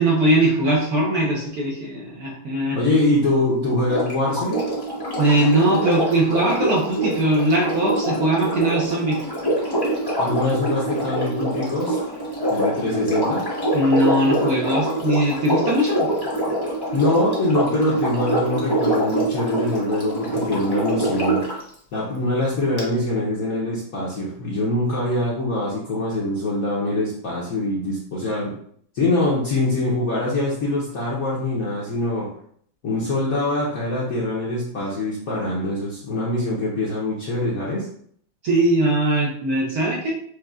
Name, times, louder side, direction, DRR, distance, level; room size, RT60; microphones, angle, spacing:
voice 1, 0.0-2.8 5.2-9.2 13.7-16.1 38.4-40.1, right 1 dB, 60° right, -3 dB, 1.1 m, -20 dB
voice 2, 2.7-4.6 10.2-12.0 12.5-13.4 16.9-21.4 21.9-28.5 28.9-32.3 32.8-37.9, left 2 dB, 60° left, -5 dB, 1.0 m, -23 dB
Sink (filling or washing), 3.8-21.6 22.8-22.9, right 1 dB, 20° left, 0.6 m, -25 dB
6.4 x 2.6 x 2.3 m, 0.63 s
omnidirectional pair, 2.2 m